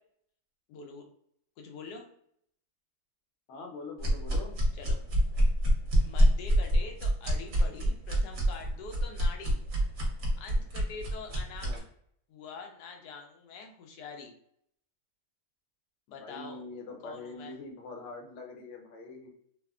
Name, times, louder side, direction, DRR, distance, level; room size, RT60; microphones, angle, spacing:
voice 1, 0.7-1.1 1.6-2.1 4.7-5.0 6.1-9.6 10.4-11.7 12.3-14.3 16.1-16.6 17.0-17.5, left 4 dB, 90° left, 3 dB, 1.2 m, -45 dB
voice 2, 3.5-4.5 11.6-11.8 16.1-19.3, left 3 dB, 65° left, 2 dB, 0.8 m, -43 dB
sound 1, 4.0-11.8, equal, 55° right, 1.0 m, -26 dB
3.2 x 2.1 x 2.3 m, 0.67 s
omnidirectional pair, 1.7 m